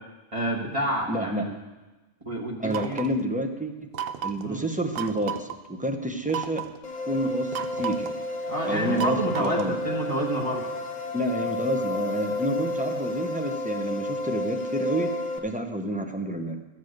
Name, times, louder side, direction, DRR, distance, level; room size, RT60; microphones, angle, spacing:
voice 1, 0.3-1.5 2.2-3.0 4.4-4.6 8.5-10.7 12.4-12.6, right 1 dB, 30° right, -2 dB, 1.4 m, -29 dB
voice 2, 1.1-1.4 2.6-3.7 4.2-6.6 7.1-8.1 8.7-9.8 11.1-15.1 15.4-16.6, right 1 dB, 10° right, 4 dB, 0.7 m, -29 dB
sound 1, 2.7-3.2 3.9-4.5 5.0-5.6 6.3-6.8 7.5-8.2 9.0-9.8, right 9 dB, 65° right, 0.7 m, -33 dB
sound 2, 6.8-15.4, left 2 dB, 40° left, 1.3 m, -31 dB
13.5 x 7.4 x 6.5 m, 1.2 s
omnidirectional pair, 1.1 m